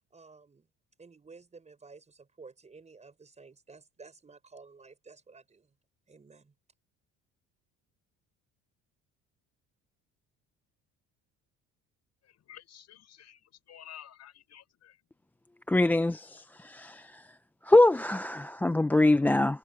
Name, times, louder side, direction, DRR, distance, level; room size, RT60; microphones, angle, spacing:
voice 1, 0.1-0.7 1.0-5.7 6.1-6.5, right 4 dB, 20° right, 5.8 m, -53 dB
voice 2, 12.2-15.0, left 11 dB, 55° left, 6.3 m, -51 dB
voice 3, 15.7-17.0 17.7-19.6, left 2 dB, 5° left, 0.3 m, -23 dB
cardioid pair, 120°, 32 cm